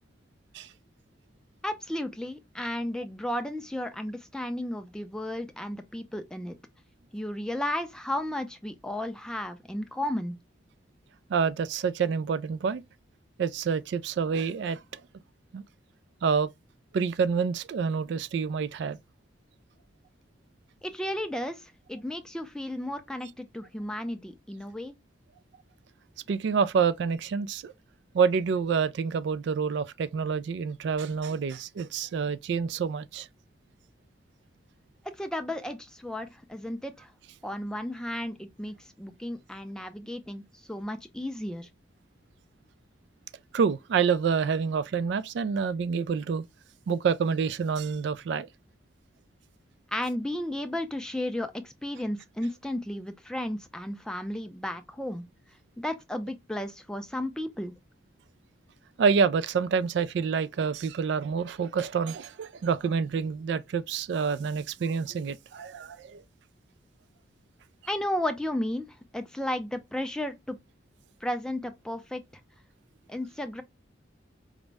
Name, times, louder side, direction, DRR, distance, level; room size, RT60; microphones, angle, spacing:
voice 1, 1.6-6.6 7.1-10.3 20.8-24.9 35.1-37.1 37.4-41.7 49.9-55.2 55.8-57.7 67.9-70.6 71.2-72.2 73.1-73.6, left 1 dB, 5° left, 0.4 m, -34 dB
voice 2, 11.3-12.8 13.4-15.0 15.5-15.6 16.2-16.5 16.9-19.0 26.3-27.7 28.1-33.3 43.5-46.5 46.9-48.5 59.0-66.2, right 6 dB, 70° right, 0.3 m, -27 dB
4.9 x 2.1 x 3.3 m
head